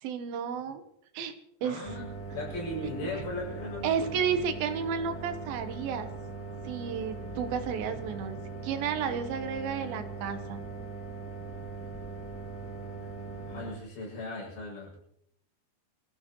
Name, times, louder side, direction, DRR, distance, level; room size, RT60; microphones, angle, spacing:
voice 1, 0.0-0.8 1.1-1.3 1.6-1.8 3.8-6.1 6.6-8.4 8.6-10.6, right 7 dB, 70° right, 8 dB, 2.8 m, -32 dB
voice 2, 1.6-2.1 2.3-4.2 13.5-15.0, left 2 dB, 75° left, -4 dB, 9.1 m, -37 dB
sound 1, 1.8-13.8, right 4 dB, 20° left, 0.3 m, -40 dB
25.0 x 15.0 x 3.1 m, 0.75 s
omnidirectional pair, 4.6 m